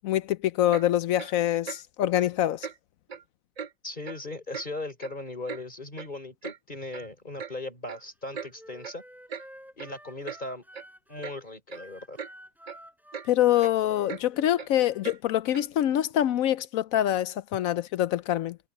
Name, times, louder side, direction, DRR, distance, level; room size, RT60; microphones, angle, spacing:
voice 1, 0.0-2.7 13.3-18.6, left 12 dB, 70° left, 0.9 m, -25 dB
Clock, 0.7-0.9 1.2-1.3 1.6-1.8 2.1-2.3 2.6-2.8 3.1-3.2 3.6-3.7 4.0-4.2 4.5-4.7 5.0-5.6 6.0-6.1 6.4-6.6 6.9-7.1 7.4-7.5 7.9-8.0 8.3-8.5 8.8-9.0 9.3-9.5 9.8-9.9 10.2-10.4 10.7-10.8 11.2-11.4 11.7-11.9 12.2-12.3 12.7-12.8 13.1-13.3 13.6-13.7 14.1-14.2 14.6-14.7 15.0-15.2 15.5-15.7, right 6 dB, 65° right, 0.4 m, -39 dB
voice 2, 3.8-9.0 9.8-10.6 11.1-12.2, left 2 dB, 30° left, 4.6 m, -38 dB
Wind instrument woodwind instrument, 8.2-11.3 11.7-15.1, equal, ahead, 4.7 m, -51 dB
omnidirectional pair, 1.6 m